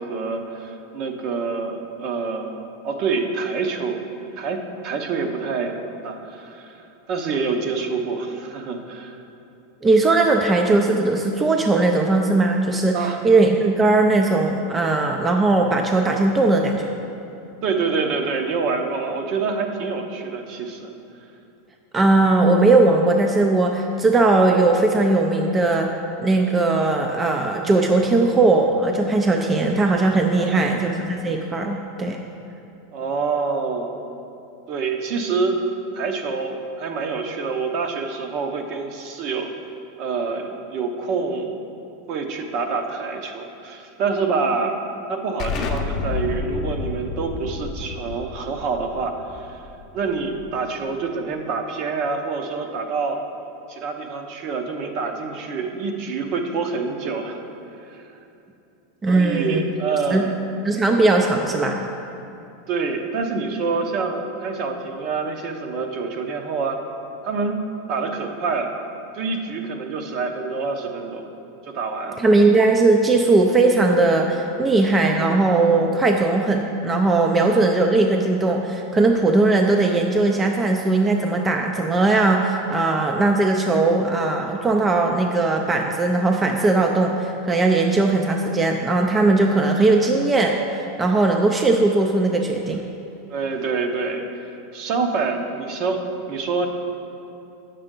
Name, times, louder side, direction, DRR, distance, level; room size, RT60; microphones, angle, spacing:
voice 1, 0.0-4.0 4.4-9.2 12.9-13.2 17.6-20.9 30.3-30.9 32.9-34.0 34.7-35.6 35.9-39.5 40.0-41.6 42.1-44.8 45.1-49.7 49.9-53.2 53.7-57.4 57.9-58.0 59.1-60.4 62.7-66.8 67.2-67.6 67.9-68.7 69.1-71.2 71.6-72.2 93.3-94.2 94.7-96.7, right 4 dB, 50° right, 4 dB, 0.8 m, -26 dB
voice 2, 9.8-13.0 13.2-16.9 21.9-32.2 59.0-59.6 60.1-60.2 60.6-61.8 72.2-92.8, right 2 dB, 20° right, 2 dB, 0.4 m, -19 dB
Explosion, 45.4-50.8, left 5 dB, 40° left, 0.7 m, -30 dB
8.7 x 6.7 x 3.7 m, 2.7 s
supercardioid pair, 135°, 0 cm